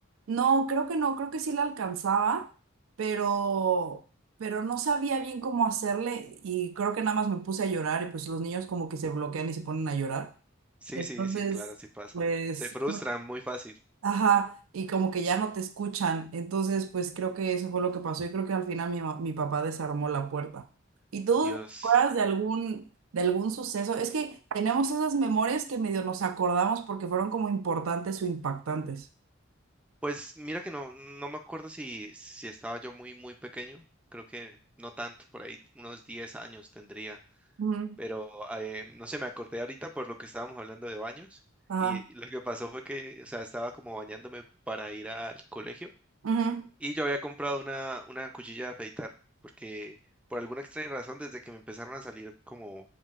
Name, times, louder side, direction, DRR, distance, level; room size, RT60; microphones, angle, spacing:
voice 1, 0.3-2.5 3.0-4.0 4.4-10.3 11.0-11.7 12.1-12.6 12.9-13.0 14.0-20.6 21.1-22.9 23.1-29.0 37.6-38.0 41.7-42.0 46.2-46.7, right 5 dB, 80° right, 0.5 m, -29 dB
voice 2, 10.8-12.1 12.6-13.7 21.4-21.9 30.0-33.8 34.1-37.2 38.0-41.4 41.8-45.9 46.8-49.1 49.6-50.0 50.3-52.8, right 1 dB, 5° right, 0.4 m, -38 dB
7.4 x 2.6 x 2.4 m
head